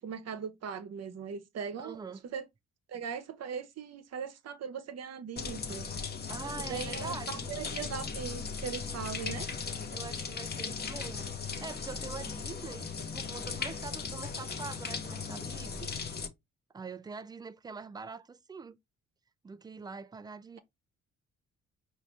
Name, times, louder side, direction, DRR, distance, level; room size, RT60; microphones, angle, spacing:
voice 1, 0.0-2.4 2.9-5.9 6.6-9.5, right 6 dB, 55° right, 0.9 m, -39 dB
voice 2, 1.8-2.2 6.3-7.5 9.9-15.9 16.7-18.8 19.4-20.6, right 5 dB, 15° right, 0.3 m, -44 dB
sound 1, 5.4-16.3, left 5 dB, 35° left, 0.8 m, -38 dB
4.9 x 2.7 x 3.2 m
cardioid pair, 90°, 30 cm